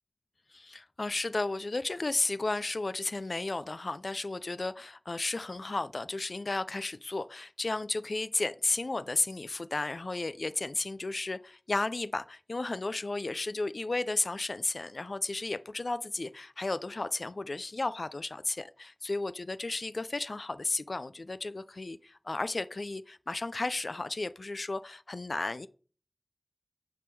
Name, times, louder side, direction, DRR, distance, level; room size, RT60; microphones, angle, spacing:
voice 1, 0.5-25.7, left 2 dB, 80° left, 0.3 m, -33 dB
8.6 x 3.6 x 4.6 m
wide cardioid pair, 40°, 0 cm